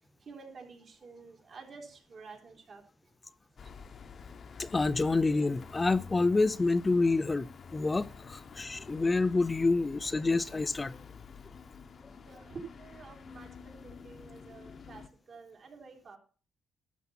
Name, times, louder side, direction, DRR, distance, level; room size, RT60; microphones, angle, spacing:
voice 1, 0.2-2.8 12.3-16.2, right 4 dB, 50° right, 3.7 m, -49 dB
sound 1, 3.6-15.1, left 5 dB, 50° left, 0.9 m, -49 dB
voice 2, 4.6-11.0, left 3 dB, 25° left, 0.4 m, -28 dB
12.0 x 7.1 x 5.7 m
cardioid pair, 90°, 0 cm